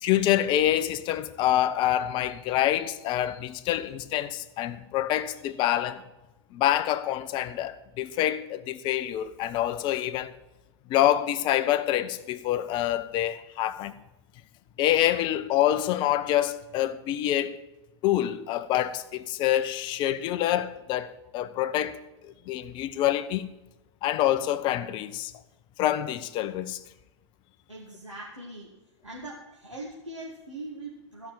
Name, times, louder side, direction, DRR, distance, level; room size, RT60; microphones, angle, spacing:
voice 1, 0.0-6.0 6.5-10.3 10.9-13.9 14.8-17.6 18.0-22.0 22.5-23.5 24.0-25.3 25.8-26.8, left 12 dB, 30° left, 0.7 m, -26 dB
voice 2, 27.7-28.7 29.0-31.3, right 2 dB, 90° right, 2.1 m, -41 dB
15.0 x 5.9 x 7.4 m
figure-of-eight pair, 95°, 15 cm